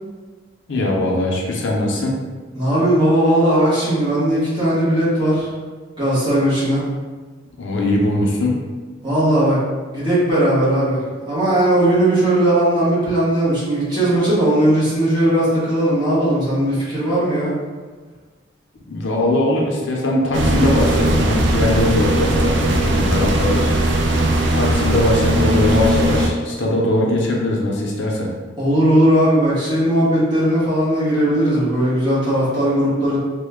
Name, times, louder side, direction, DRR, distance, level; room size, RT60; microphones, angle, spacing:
voice 1, 0.7-2.2 7.6-8.5 18.9-23.7 24.5-28.3, left 1 dB, 70° left, -2 dB, 0.6 m, -20 dB
voice 2, 2.5-5.5 6.0-6.9 9.0-9.6 9.9-17.5 28.6-33.2, right 1 dB, 20° right, -10 dB, 1.1 m, -17 dB
sound 1, 20.3-26.3, right 1 dB, 65° right, 0.4 m, -18 dB
3.0 x 2.1 x 3.5 m, 1.4 s
head